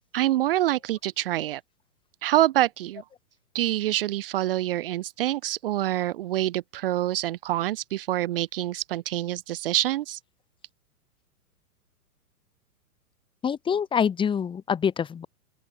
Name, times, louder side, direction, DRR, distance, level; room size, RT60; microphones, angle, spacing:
voice 1, 0.1-1.6 2.2-3.0 3.5-10.2, right 14 dB, 35° right, 1.0 m, -26 dB
voice 2, 13.4-15.3, left 7 dB, 10° left, 1.7 m, -25 dB
open air
figure-of-eight pair, 115°, 47 cm